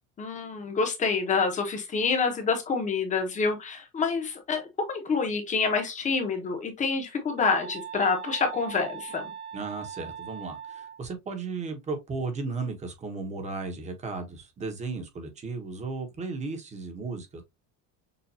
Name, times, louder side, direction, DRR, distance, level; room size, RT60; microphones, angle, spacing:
voice 1, 0.2-4.6 4.9-9.3, left 4 dB, 20° left, 1.0 m, -27 dB
sound 1, 7.4-11.0, right 8 dB, 60° right, 1.3 m, -40 dB
voice 2, 9.5-17.4, right 3 dB, 20° right, 1.0 m, -35 dB
6.9 x 2.5 x 2.7 m
cardioid pair, 175°, 37 cm